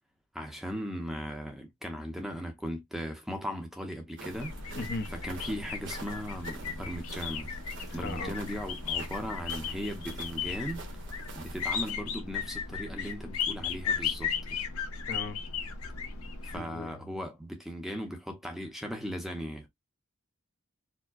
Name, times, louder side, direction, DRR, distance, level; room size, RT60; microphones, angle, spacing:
voice 1, 0.3-4.5 5.1-7.5 7.9-10.8 11.3-14.6 16.4-19.7, equal, ahead, 0.7 m, -38 dB
sound 1, 4.2-11.9, right 3 dB, 55° right, 1.0 m, -47 dB
sound 2, 4.3-16.6, left 6 dB, 90° left, 0.7 m, -36 dB
voice 2, 4.7-5.1 8.0-8.4 15.1-15.4 16.5-17.2, left 3 dB, 50° left, 0.6 m, -38 dB
4.5 x 2.1 x 2.4 m
head